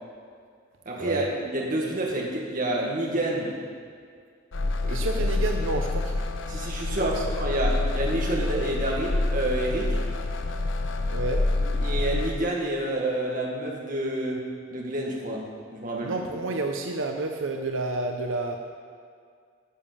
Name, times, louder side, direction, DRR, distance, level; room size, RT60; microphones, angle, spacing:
voice 1, 0.9-3.5 4.8-5.1 6.5-10.0 11.6-14.4 14.7-15.5 15.7-16.2, right 1 dB, 45° right, -2 dB, 1.9 m, -28 dB
sound 1, 4.5-12.4, left 2 dB, 75° left, 0.7 m, -27 dB
voice 2, 4.9-6.2 7.0-7.3 11.1-11.6 16.0-18.6, right 2 dB, 90° right, 4 dB, 0.7 m, -30 dB
10.0 x 7.3 x 6.9 m, 2.1 s
head